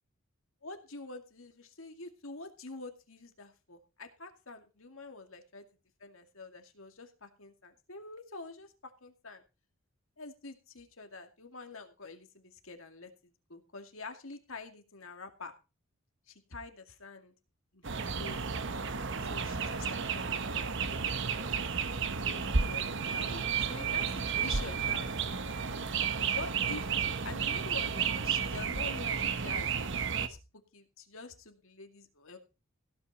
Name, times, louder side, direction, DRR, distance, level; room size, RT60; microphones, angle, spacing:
voice 1, 0.6-5.7 6.0-9.4 10.2-15.5 16.3-17.3 17.7-18.5 19.2-21.5 21.8-25.2 26.0-30.4 30.7-32.4, left 3 dB, 75° left, 6 dB, 2.3 m, -47 dB
sound 1, 17.8-30.3, right 6 dB, 60° right, 1.0 m, -32 dB
16.5 x 8.6 x 4.2 m, 0.30 s
head